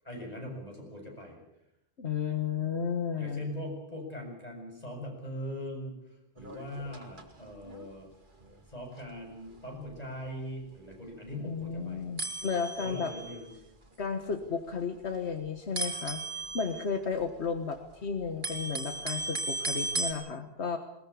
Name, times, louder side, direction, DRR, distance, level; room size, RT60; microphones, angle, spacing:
voice 1, 0.0-1.4 3.2-8.1 8.7-12.1 12.8-13.5, left 1 dB, 35° left, 1 dB, 7.4 m, -41 dB
voice 2, 2.0-3.5 11.4-13.1 14.0-16.2 16.5-20.8, left 6 dB, 85° left, 7 dB, 1.7 m, -33 dB
sound 1, 6.4-7.3 7.6-7.9 8.4-8.6 9.0-9.1 9.5-9.6 9.8-10.0 10.9-11.0 11.6-11.7 12.2-13.5 14.3-14.8 15.0-15.3 15.8-17.8 18.1-20.1, right 2 dB, 50° right, 2.3 m, -36 dB
21.0 x 20.0 x 8.5 m, 0.80 s
omnidirectional pair, 1.1 m